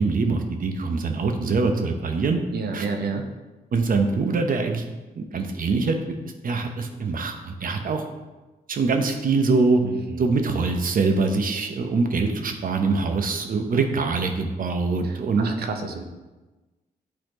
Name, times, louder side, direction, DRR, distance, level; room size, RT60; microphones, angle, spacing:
voice 1, 0.0-2.4 2.7-2.8 3.7-4.8 5.2-6.0 6.4-8.0 8.7-9.8 10.2-15.5, right 4 dB, 60° right, 5 dB, 0.9 m, -23 dB
voice 2, 2.5-3.3 9.8-10.2 15.4-16.0, right 4 dB, 90° right, 4 dB, 0.9 m, -30 dB
10.5 x 4.2 x 3.1 m, 1.2 s
cardioid pair, 85°, 16 cm